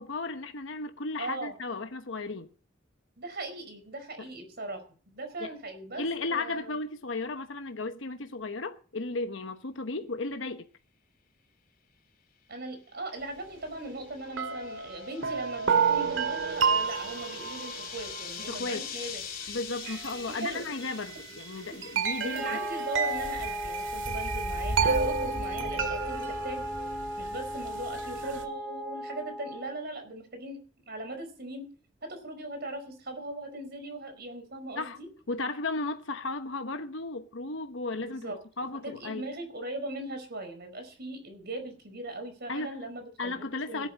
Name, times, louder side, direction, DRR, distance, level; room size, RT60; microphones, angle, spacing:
voice 1, 0.0-2.5 5.4-5.5 6.0-10.7 18.5-18.8 19.5-22.6 34.8-35.0 35.3-39.3 42.5-42.8 43.2-43.9, left 3 dB, 70° left, 1.1 m, -35 dB
voice 2, 1.2-1.5 3.2-6.8 12.5-19.2 20.3-20.6 21.7-21.8 22.2-26.6 27.2-30.6 30.9-31.7 32.0-35.1 38.0-38.4 38.8-43.4 43.7-43.9, right 2 dB, 55° right, 5.0 m, -39 dB
sound 1, 13.4-23.2, left 8 dB, 45° left, 2.7 m, -44 dB
sound 2, 13.6-13.7 14.4-28.5, right 5 dB, 75° right, 2.1 m, -31 dB
Wind instrument woodwind instrument, 22.3-29.8, equal, 5° left, 0.6 m, -36 dB
17.0 x 11.5 x 4.2 m
head